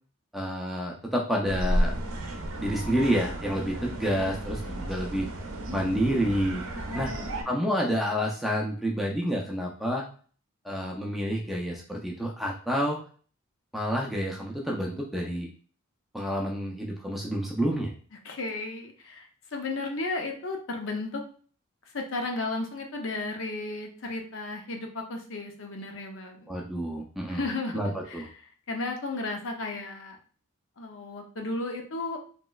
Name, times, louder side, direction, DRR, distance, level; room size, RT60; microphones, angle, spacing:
voice 1, 0.3-1.9 2.6-5.3 5.7-6.6 6.9-7.1 7.4-10.1 10.6-13.0 13.7-15.5 16.1-17.9 26.5-27.4 27.7-28.3, equal, ahead, -2 dB, 0.4 m, -29 dB
sound 1, 1.4-7.4, right 1 dB, 75° right, 0.6 m, -32 dB
voice 2, 4.0-4.9 6.7-7.6 18.2-21.2 21.9-26.5 27.3-30.2 30.8-32.2, left 2 dB, 65° left, 3 dB, 0.6 m, -34 dB
3.0 x 3.0 x 2.3 m, 0.43 s
head